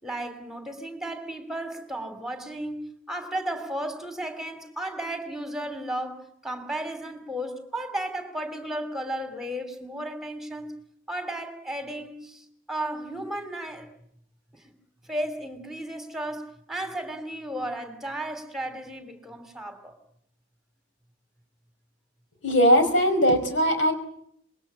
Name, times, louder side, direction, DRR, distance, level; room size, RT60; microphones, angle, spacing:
voice 1, 0.0-10.7 11.1-13.9 14.5-14.7 15.0-19.9, right 1 dB, ahead, 3.0 m, -34 dB
voice 2, 22.4-23.9, equal, 70° left, 5.3 m, -20 dB
27.0 x 22.0 x 8.5 m
head